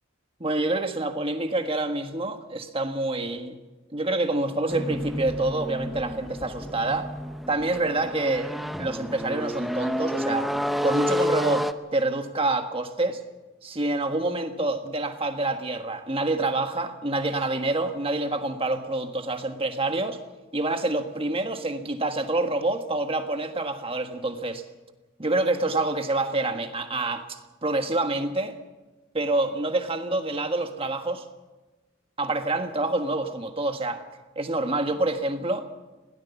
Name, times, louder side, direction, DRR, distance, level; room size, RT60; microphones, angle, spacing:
voice 1, 0.4-3.6 3.9-7.1 7.5-8.5 8.8-10.5 10.8-13.2 13.6-20.2 20.5-24.6 25.2-28.6 29.1-31.3 32.2-34.0 34.3-35.7, right 2 dB, 30° right, 6 dB, 1.5 m, -27 dB
sound 1, 4.7-11.7, equal, ahead, 0.7 m, -30 dB
21.0 x 17.5 x 7.1 m, 1.2 s
head